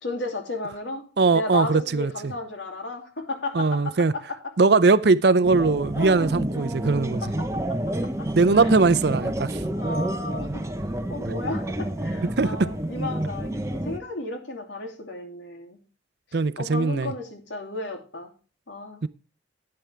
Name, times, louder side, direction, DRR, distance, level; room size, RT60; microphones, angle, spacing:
voice 1, 0.0-1.0 1.3-4.0 5.9-6.3 7.2-8.7 9.6-10.6 11.1-15.8 16.6-18.3 18.7-19.0, left 2 dB, 75° left, 2.8 m, -34 dB
voice 2, 1.2-2.1 3.5-4.1 4.6-7.2 8.3-9.6 12.4-12.7 16.3-17.1 19.0-19.1, right 3 dB, 55° right, 0.5 m, -20 dB
sound 1, 5.4-14.0, right 1 dB, 15° right, 0.8 m, -29 dB
11.5 x 9.7 x 3.4 m
head